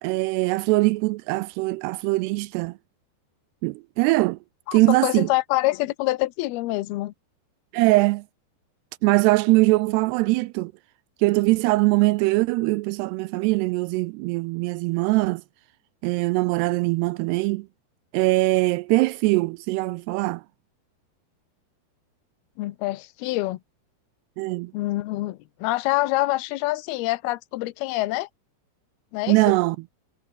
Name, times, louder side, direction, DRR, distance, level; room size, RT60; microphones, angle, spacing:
voice 1, 0.0-2.8 3.6-4.4 4.7-5.3 7.7-8.2 9.0-10.7 11.2-15.4 16.0-17.7 18.1-20.4 24.4-24.7 29.3-29.8, right 22 dB, 85° right, 2.5 m, -22 dB
voice 2, 4.7-7.1 22.6-23.6 24.7-28.3 29.1-29.4, left 18 dB, 75° left, 2.7 m, -26 dB
omnidirectional pair, 4.9 m